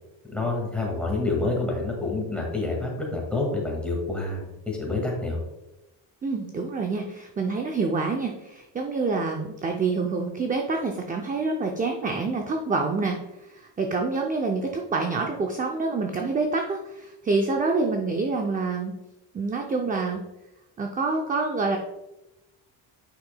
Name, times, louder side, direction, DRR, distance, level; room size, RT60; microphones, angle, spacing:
voice 1, 0.3-5.4, left 2 dB, ahead, -2 dB, 1.9 m, -28 dB
voice 2, 6.2-13.2 13.5-19.0 19.3-20.2 20.8-21.8, right 3 dB, 20° right, 2 dB, 0.4 m, -27 dB
8.6 x 5.8 x 2.2 m, 0.95 s
cardioid pair, 145°, 47 cm